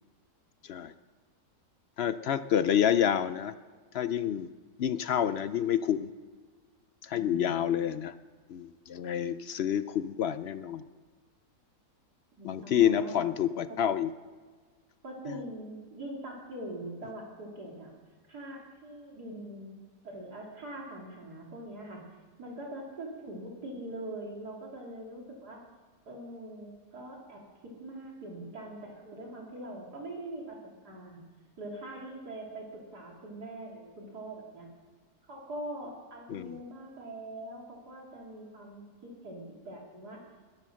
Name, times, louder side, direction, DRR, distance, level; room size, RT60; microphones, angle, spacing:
voice 1, 2.0-3.5 3.9-4.5 4.8-6.1 7.0-8.1 8.5-10.8 12.4-14.1 36.3-36.6, left 9 dB, 65° left, 13 dB, 0.6 m, -28 dB
voice 2, 7.1-7.7 12.4-13.2 13.7-13.8 15.0-17.9 18.3-19.7 20.0-22.0 22.4-25.6 26.1-31.2 31.6-34.7 35.3-38.9 39.2-40.2, right 1 dB, 90° right, -1 dB, 3.3 m, -43 dB
21.0 x 10.5 x 6.4 m, 1.5 s
omnidirectional pair, 1.6 m